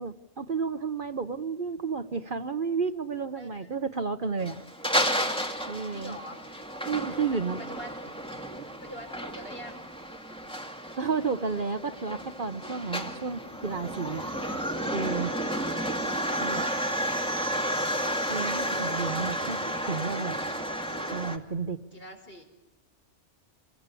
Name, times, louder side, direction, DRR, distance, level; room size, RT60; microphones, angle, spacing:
voice 1, 0.0-4.6 5.6-6.2 6.9-7.6 8.5-8.7 11.0-14.3 14.9-15.3 16.4-16.6 18.3-19.6 19.8-20.3 21.1-21.8, right 5 dB, 45° right, 9 dB, 1.2 m, -31 dB
voice 2, 3.4-4.0 5.9-6.4 7.3-8.3 8.8-9.8 13.1-13.2 14.2-14.7 15.1-15.8 21.9-22.4, equal, 50° left, 3 dB, 5.7 m, -46 dB
sound 1, 4.4-21.4, equal, 5° left, 2.3 m, -32 dB
28.0 x 22.0 x 8.4 m, 1.0 s
omnidirectional pair, 1.2 m